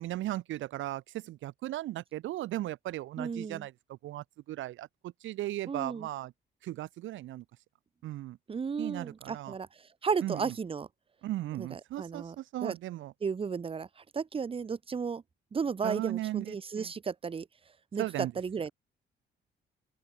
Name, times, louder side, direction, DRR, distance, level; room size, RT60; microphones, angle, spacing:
voice 1, 0.0-6.3 6.6-7.4 8.0-8.4 8.8-9.6 10.2-10.5 11.2-13.1 15.8-16.9 18.0-18.3, right 15 dB, 75° right, 0.7 m, -37 dB
voice 2, 3.2-3.6 5.7-6.1 8.5-9.7 10.0-10.9 11.6-12.4 12.6-12.8 13.2-13.9 14.1-15.2 15.5-17.5 17.9-18.7, right 5 dB, 30° right, 0.7 m, -34 dB
open air
cardioid pair, 90°, 20 cm